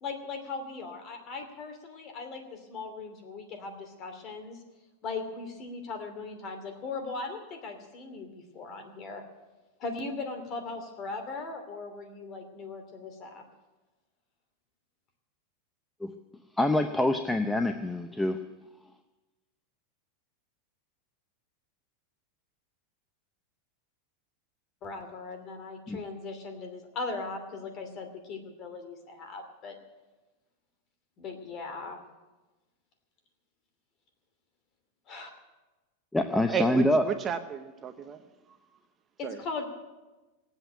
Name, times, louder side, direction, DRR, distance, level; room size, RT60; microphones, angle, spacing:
voice 1, 0.0-4.6 5.0-9.2 9.8-13.4 24.8-29.7 31.2-32.0 35.1-35.3 39.2-39.7, left 3 dB, 35° left, 6 dB, 2.8 m, -39 dB
voice 2, 16.6-18.4 25.9-26.0 36.1-37.0, left 1 dB, 5° left, 7 dB, 0.7 m, -25 dB
voice 3, 36.5-38.2 38.5-38.6 39.2-39.4, right 7 dB, 25° right, 7 dB, 0.8 m, -33 dB
18.0 x 8.1 x 9.1 m, 1.1 s
supercardioid pair, 145°, 0 cm